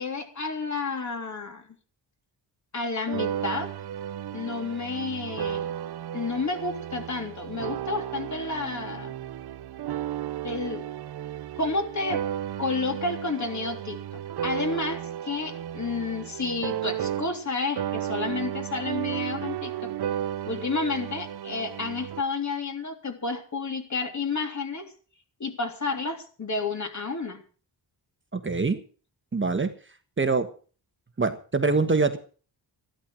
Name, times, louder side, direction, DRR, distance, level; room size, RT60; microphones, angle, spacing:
voice 1, 0.0-1.7 2.7-3.7 4.3-5.7 6.1-9.1 10.4-10.8 11.6-12.2 12.6-19.9 20.4-24.9 25.4-27.4, left 3 dB, 40° left, 5 dB, 3.4 m, -31 dB
sound 1, 3.1-17.5 17.8-22.2, right 10 dB, 65° right, 0.7 m, -34 dB
voice 2, 28.3-28.8 29.3-29.7 30.2-30.5 31.2-32.2, right 4 dB, 25° right, 8 dB, 1.5 m, -24 dB
13.5 x 12.0 x 6.2 m, 0.40 s
wide cardioid pair, 110°, 42 cm